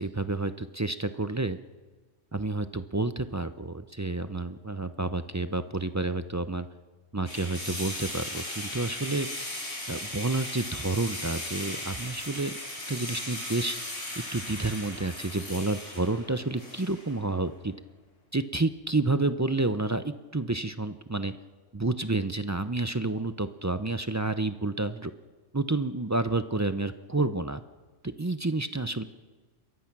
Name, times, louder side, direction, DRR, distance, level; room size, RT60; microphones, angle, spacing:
voice 1, 0.0-1.6 2.3-6.7 7.1-9.3 9.9-12.5 12.9-13.8 14.3-17.7 18.3-21.3 21.7-25.1 25.5-27.6 28.0-29.0, right 2 dB, 25° right, 11 dB, 0.4 m, -29 dB
sound 1, 7.3-17.2, left 1 dB, 85° left, 5.9 m, -37 dB
27.0 x 22.5 x 6.0 m, 1.3 s
omnidirectional pair, 1.3 m